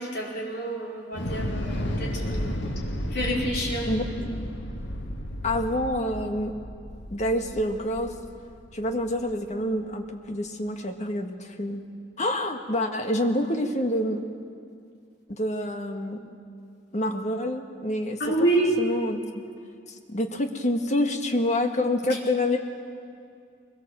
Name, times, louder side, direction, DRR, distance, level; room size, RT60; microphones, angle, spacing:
voice 1, 0.0-2.6 3.1-4.0 18.2-18.8 22.1-22.2, right 1 dB, 60° left, -3 dB, 5.0 m, -28 dB
Thunder / Explosion, 1.1-9.3, equal, 80° left, 1.8 m, -33 dB
voice 2, 3.9-4.5 5.4-6.6 7.1-8.1 8.7-11.8 12.2-14.3 15.3-16.4 16.9-18.2 18.8-19.4 20.1-22.6, left 1 dB, 40° left, 5 dB, 1.7 m, -27 dB
22.5 x 22.5 x 7.6 m, 2.3 s
head